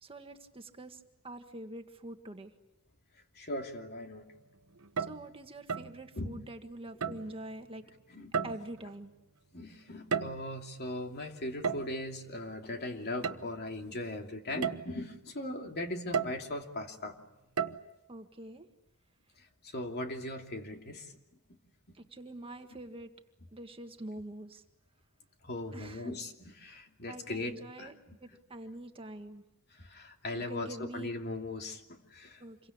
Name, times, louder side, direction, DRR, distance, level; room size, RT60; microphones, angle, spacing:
voice 1, 0.0-2.5 5.0-7.8 8.4-9.1 18.1-18.7 21.9-23.1 23.5-24.6 25.7-26.2 27.1-29.4 30.3-31.1 32.4-32.7, right 1 dB, 25° right, 5 dB, 1.7 m, -45 dB
voice 2, 3.4-4.2 6.2-6.5 7.1-7.2 8.1-8.5 9.5-17.2 19.6-21.1 25.4-28.2 29.7-32.4, left 1 dB, 50° left, 3 dB, 2.9 m, -39 dB
sound 1, 4.8-5.3 5.7-6.0 7.0-7.3 8.3-8.8 9.9-10.6 11.6-12.0 13.2-13.4 13.9-14.0 14.6-14.9 16.1-16.5 17.6-17.8, right 6 dB, 70° right, 1.1 m, -33 dB
28.0 x 23.5 x 8.8 m, 0.90 s
head